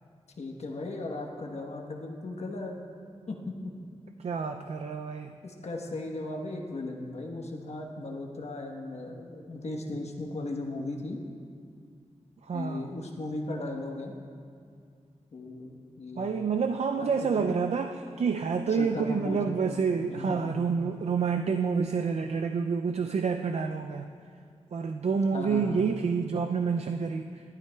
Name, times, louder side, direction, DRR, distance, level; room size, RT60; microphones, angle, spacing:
voice 1, 0.4-2.8 3.3-3.7 5.4-11.2 12.5-14.2 15.3-16.4 17.0-17.3 18.8-19.6 20.0-20.6 25.3-25.8, left 2 dB, 65° left, 1 dB, 1.1 m, -37 dB
voice 2, 4.2-5.4 12.4-12.9 16.2-24.1 24.7-27.3, right 5 dB, 65° right, 6 dB, 0.4 m, -28 dB
15.0 x 12.0 x 2.3 m, 2.3 s
wide cardioid pair, 95°, 12 cm